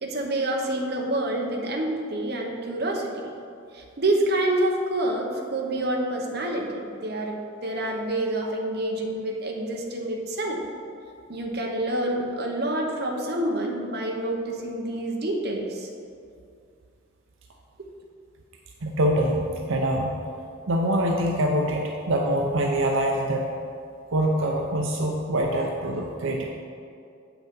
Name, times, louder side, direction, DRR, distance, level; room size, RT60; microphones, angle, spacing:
voice 1, 0.0-3.3 3.7-10.6 11.3-15.9, right 1 dB, 55° right, 0 dB, 1.1 m, -27 dB
voice 2, 18.8-20.2 20.7-23.5 24.1-26.5, right 1 dB, 80° right, 0 dB, 0.7 m, -24 dB
7.9 x 6.0 x 5.3 m, 2.4 s
head